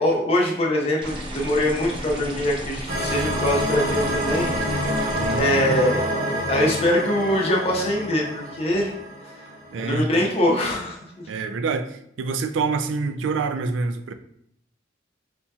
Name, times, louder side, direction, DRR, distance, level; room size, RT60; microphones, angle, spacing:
voice 1, 0.0-4.9 5.3-6.1 6.5-8.9 9.8-11.2, left 1 dB, 35° left, -2 dB, 0.7 m, -23 dB
sound 1, 1.0-5.4, right 1 dB, 30° right, 0.5 m, -34 dB
sound 2, 2.9-9.9, equal, 50° right, 1.0 m, -27 dB
voice 2, 5.2-5.7 9.7-10.3 11.3-14.1, right 4 dB, 85° right, 8 dB, 0.3 m, -27 dB
4.2 x 2.7 x 2.3 m, 0.71 s
head